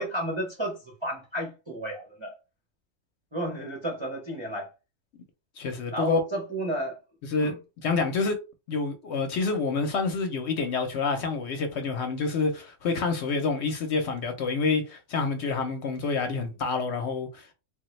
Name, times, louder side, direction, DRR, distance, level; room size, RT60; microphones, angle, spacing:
voice 1, 0.0-2.3 3.3-4.7 5.9-7.0 7.4-7.6, right 1 dB, 30° right, 0.5 m, -32 dB
voice 2, 5.6-6.2 7.3-7.5 7.8-8.4 8.7-17.5, left 4 dB, 65° left, 0.8 m, -27 dB
3.4 x 2.1 x 3.0 m
omnidirectional pair, 1.4 m